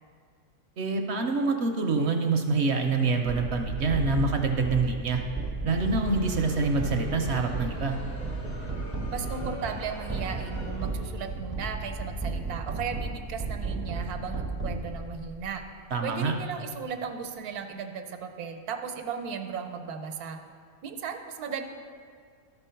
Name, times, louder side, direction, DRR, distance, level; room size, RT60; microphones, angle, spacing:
voice 1, 0.8-5.2 5.6-8.0 15.9-16.3, right 3 dB, 60° right, 4 dB, 0.8 m, -26 dB
sound 1, 3.3-15.4, right 3 dB, 15° right, 0.4 m, -34 dB
Crowd, 5.7-11.4, left 1 dB, 65° left, 2.0 m, -45 dB
voice 2, 9.1-15.6 16.0-20.4 20.8-21.6, right 6 dB, 80° right, 6 dB, 1.2 m, -36 dB
12.5 x 4.5 x 5.6 m, 2.1 s
omnidirectional pair, 1.6 m